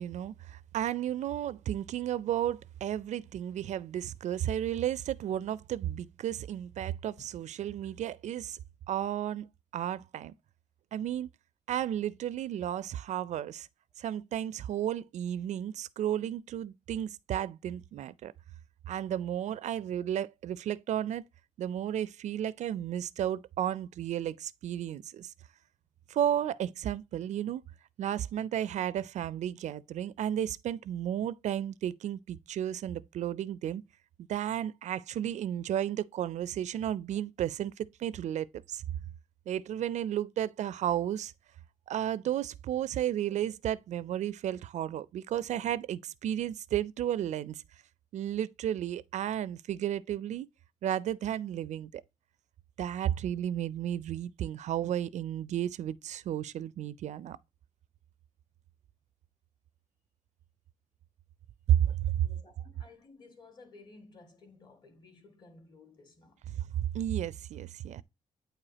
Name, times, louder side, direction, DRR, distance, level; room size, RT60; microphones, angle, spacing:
voice 1, 0.0-8.6 8.9-9.5 9.7-10.3 10.9-11.3 11.7-13.7 14.0-18.3 18.9-21.2 21.6-25.3 26.1-27.6 28.0-33.8 34.3-38.8 39.5-41.3 41.9-47.6 48.1-50.5 50.8-52.0 52.8-57.4 61.7-62.3 66.5-68.0, right 11 dB, 70° right, 0.4 m, -33 dB
voice 2, 62.2-66.5, left 3 dB, 35° left, 1.7 m, -55 dB
8.9 x 4.9 x 2.8 m
wide cardioid pair, 170°, 13 cm